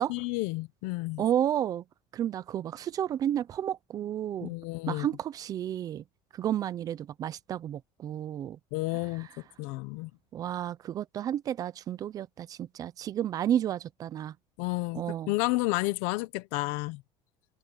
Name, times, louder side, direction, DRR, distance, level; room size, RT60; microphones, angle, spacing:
voice 1, 0.1-1.2 4.4-5.1 8.7-9.3 9.6-10.1 14.6-17.0, left 21 dB, 75° left, 1.2 m, -31 dB
voice 2, 1.2-1.8 2.1-4.5 4.9-6.0 6.3-8.6 10.3-14.3 14.9-15.3, right 10 dB, 30° right, 0.7 m, -31 dB
cardioid pair, 160°, 12 cm